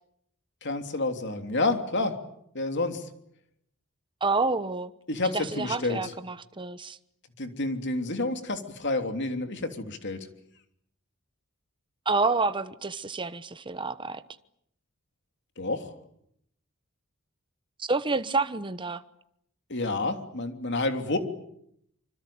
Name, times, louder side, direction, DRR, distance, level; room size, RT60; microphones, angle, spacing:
voice 1, 0.6-2.1 2.5-3.1 5.1-6.1 7.4-10.2 15.6-15.9 19.7-21.2, left 2 dB, 55° left, 3.2 m, -29 dB
voice 2, 4.2-4.9 5.3-7.0 12.1-14.2 17.8-19.0, right 3 dB, 25° right, 1.0 m, -28 dB
25.5 x 25.5 x 8.7 m
head